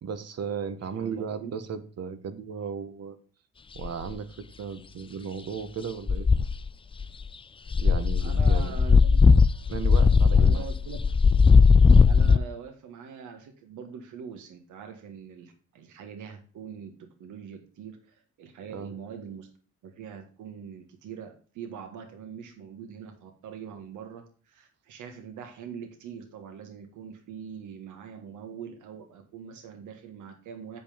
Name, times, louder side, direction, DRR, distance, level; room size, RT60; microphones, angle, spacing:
voice 1, 0.0-3.2 3.7-6.3 7.8-8.8 9.7-10.7 18.7-18.9, right 6 dB, 55° right, 11 dB, 1.4 m, -35 dB
voice 2, 0.9-1.5 8.2-9.2 9.7-9.8 10.3-11.0 12.0-19.5 19.8-30.8, right 7 dB, 80° right, 5 dB, 1.7 m, -43 dB
sound 1, 3.8-4.1 6.1-6.7 7.0-7.2 7.7-12.4, left 5 dB, 20° left, 0.4 m, -18 dB
8.1 x 5.7 x 5.1 m, 0.40 s
cardioid pair, 90°, 30 cm